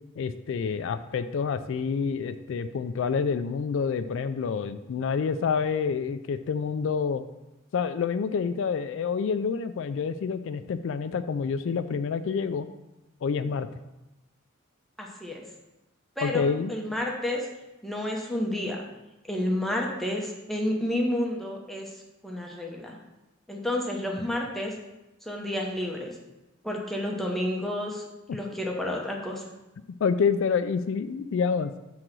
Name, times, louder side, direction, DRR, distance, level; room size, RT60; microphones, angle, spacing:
voice 1, 0.2-7.2 7.7-12.7 13.2-13.8 16.2-16.7 30.0-31.7, left 6 dB, 65° left, 10 dB, 0.3 m, -28 dB
voice 2, 15.0-15.4 16.2-17.5 17.8-18.8 19.3-21.9 22.2-23.0 23.5-24.7 25.3-26.1 26.6-28.0 28.3-29.4, left 1 dB, ahead, -1 dB, 0.8 m, -30 dB
6.2 x 3.9 x 5.9 m, 0.99 s
head